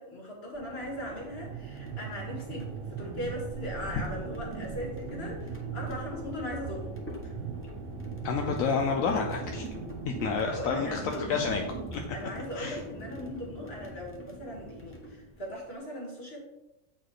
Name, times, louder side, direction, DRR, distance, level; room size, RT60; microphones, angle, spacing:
voice 1, 0.0-7.0 7.2-7.4 10.3-11.5 12.1-16.4, left 1 dB, 45° left, -2 dB, 2.3 m, -39 dB
sound 1, 0.5-12.1, right 8 dB, 75° right, 1.1 m, -41 dB
sound 2, 0.7-15.7, equal, 10° left, 0.9 m, -42 dB
voice 2, 8.2-9.7 10.1-11.6 11.9-12.0 12.6-12.8, left 5 dB, 80° left, 3 dB, 1.1 m, -29 dB
8.3 x 4.4 x 4.8 m, 1.0 s
omnidirectional pair, 1.4 m